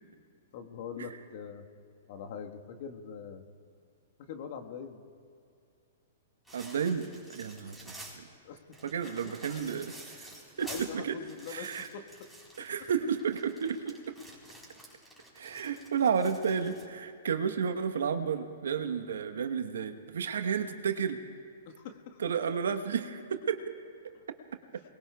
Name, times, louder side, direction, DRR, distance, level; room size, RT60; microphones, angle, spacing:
voice 1, 0.5-1.7 2.1-3.5 4.2-5.0 8.4-8.8 10.4-12.0 21.6-22.2, left 6 dB, 50° left, 4 dB, 1.4 m, -43 dB
sound 1, 6.5-8.2 8.7-16.9, right 1 dB, ahead, 3.9 m, -50 dB
voice 2, 6.5-8.2 8.8-10.3 10.6-11.2 11.5-11.9 12.6-13.9 15.3-21.2 22.2-23.7 24.0-24.1, right 6 dB, 70° right, 8 dB, 1.0 m, -32 dB
28.0 x 20.5 x 2.3 m, 2.5 s
hypercardioid pair, 115°, 0 cm